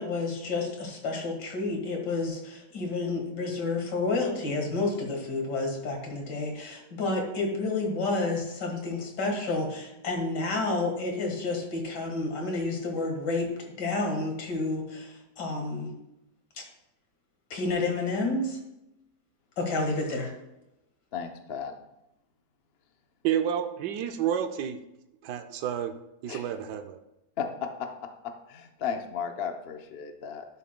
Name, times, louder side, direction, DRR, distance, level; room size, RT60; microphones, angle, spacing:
voice 1, 0.0-13.5 13.8-15.9 16.6-16.7 17.5-18.6 19.6-20.3, left 3 dB, 85° left, 1 dB, 2.3 m, -30 dB
voice 2, 21.1-21.7 26.3-26.5 27.4-27.9 28.5-30.5, left 7 dB, 50° left, 5 dB, 0.7 m, -34 dB
voice 3, 23.2-24.8 25.2-25.9 26.2-27.0, right 9 dB, 85° right, 7 dB, 1.3 m, -29 dB
12.0 x 6.8 x 2.2 m, 0.89 s
omnidirectional pair, 1.8 m